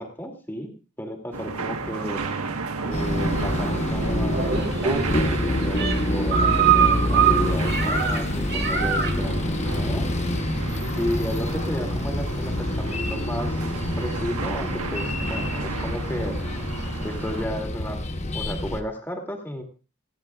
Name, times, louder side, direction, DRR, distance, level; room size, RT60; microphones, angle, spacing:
voice 1, 0.0-2.2 2.8-10.1 11.0-16.6 17.0-19.6, equal, 10° left, 3 dB, 2.7 m, -33 dB
sound 1, 1.3-17.5, right 4 dB, 85° right, 1.4 m, -33 dB
sound 2, 2.9-18.8, left 1 dB, 30° left, 1.1 m, -27 dB
sound 3, 4.3-9.3, right 8 dB, 45° right, 2.0 m, -24 dB
30.0 x 10.5 x 2.5 m, 0.35 s
head